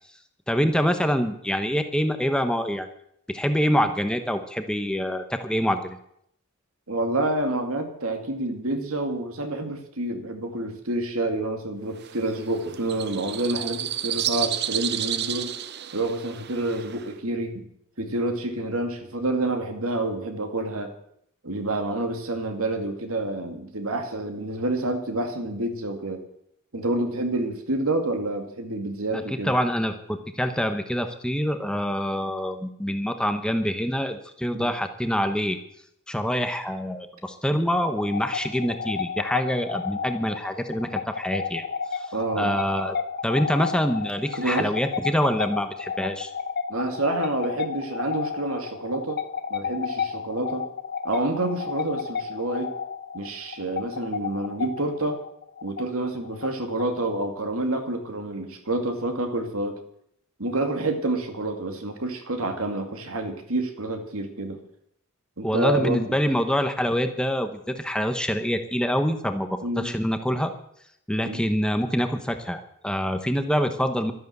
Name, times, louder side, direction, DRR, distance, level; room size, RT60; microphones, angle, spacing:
voice 1, 0.5-2.9 3.3-6.0 29.1-35.6 36.1-41.7 41.9-42.1 42.4-46.3 65.4-70.5 71.1-74.1, equal, 5° left, 7 dB, 0.9 m, -25 dB
voice 2, 6.9-15.5 15.9-17.6 18.0-20.9 21.4-26.2 26.7-29.5 34.5-34.7 42.1-42.6 44.3-44.7 46.7-49.2 49.5-50.7 51.0-52.7 53.1-55.2 55.6-59.8 60.4-64.6 65.4-66.2 69.6-69.9 71.2-71.4, right 2 dB, 75° right, 6 dB, 2.3 m, -28 dB
sound 1, 12.0-17.1, right 11 dB, 50° right, 0.7 m, -31 dB
sound 2, 37.8-57.2, left 6 dB, 45° left, 0.9 m, -32 dB
13.0 x 11.0 x 8.0 m, 0.72 s
head